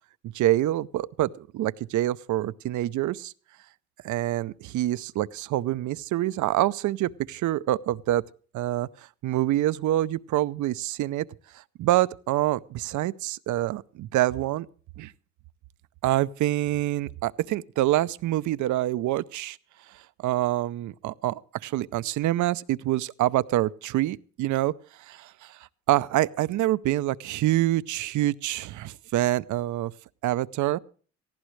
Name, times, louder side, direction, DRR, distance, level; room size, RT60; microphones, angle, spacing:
voice 1, 0.3-3.3 4.0-8.2 8.5-11.3 11.5-14.7 15.0-15.1 16.0-19.6 19.9-24.7 25.0-29.9 30.2-30.8, right 14 dB, 75° right, 0.6 m, -26 dB
18.0 x 15.0 x 3.2 m
cardioid pair, 90°, 30 cm